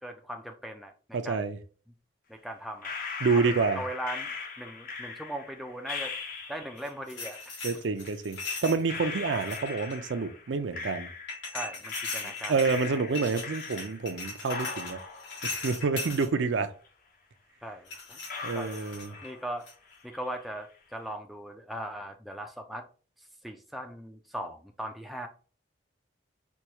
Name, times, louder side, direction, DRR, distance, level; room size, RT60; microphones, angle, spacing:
voice 1, 0.0-0.9 1.2-1.5 2.3-2.9 3.4-4.3 4.6-6.1 6.5-7.6 11.5-12.8 16.0-16.1 17.6-18.2 18.5-18.7 19.2-19.7 20.0-22.8 23.4-25.3, right 1 dB, ahead, 0.3 m, -39 dB
voice 2, 1.1-1.6 3.2-3.8 7.6-11.1 12.2-15.0 15.4-16.7 18.4-19.2, right 4 dB, 70° right, 0.4 m, -28 dB
sound 1, 2.8-6.9 8.0-8.1 8.9-11.6 11.9-14.2 14.5-16.5 16.8-16.9 17.6-17.7 18.3-19.6 19.9-20.4, left 5 dB, 45° left, 0.7 m, -40 dB
sound 2, 6.8-8.8 9.3-10.1 11.3-16.3 17.9-19.3 19.7-19.9, left 3 dB, 75° left, 1.8 m, -39 dB
4.5 x 2.3 x 2.8 m
head